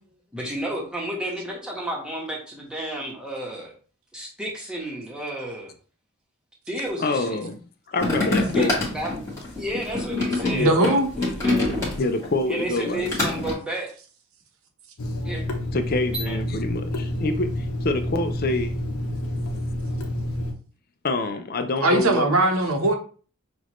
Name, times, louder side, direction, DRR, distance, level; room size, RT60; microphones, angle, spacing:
voice 1, 0.3-3.7 4.1-5.7 6.7-7.4 8.5-9.3 9.5-11.8 12.5-13.9 15.2-15.4 16.1-16.4, right 1 dB, 5° right, 1.2 m, -32 dB
voice 2, 7.0-7.6 7.9-8.7 10.5-10.9 12.0-13.1 15.7-18.7 21.0-22.3, left 2 dB, 45° left, 0.5 m, -26 dB
sound 1, 8.0-12.3 12.6-13.5, left 2 dB, 15° left, 1.5 m, -25 dB
voice 3, 10.6-11.1 21.8-23.0, right 1 dB, 75° right, 1.0 m, -20 dB
Water tap faucet / Sink (filling or washing), 15.0-20.5, left 1 dB, 75° left, 0.7 m, -29 dB
6.2 x 2.5 x 3.0 m
head